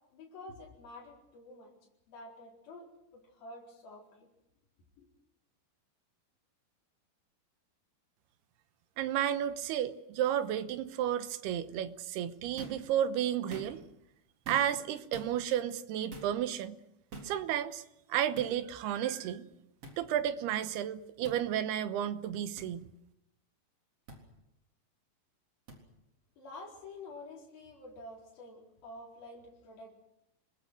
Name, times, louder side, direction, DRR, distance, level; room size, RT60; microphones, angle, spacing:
voice 1, 0.1-1.7 2.1-2.9 3.1-4.3 5.0-5.1 26.4-29.9, left 2 dB, 65° left, -3 dB, 6.1 m, -49 dB
voice 2, 9.0-13.8 14.5-16.8 17.2-17.8 18.1-19.5 20.0-22.9, right 10 dB, 85° right, 11 dB, 3.1 m, -32 dB
sound 1, 12.6-12.9 13.4-13.9 14.4-14.8 15.1-15.3 16.1-16.3 17.1-17.3 18.3-18.5 19.8-20.0 21.2-21.4 22.6-22.7 24.1-24.2 25.7-25.8, right 2 dB, 40° right, 4.6 m, -45 dB
28.5 x 21.0 x 6.4 m, 0.85 s
omnidirectional pair, 4.5 m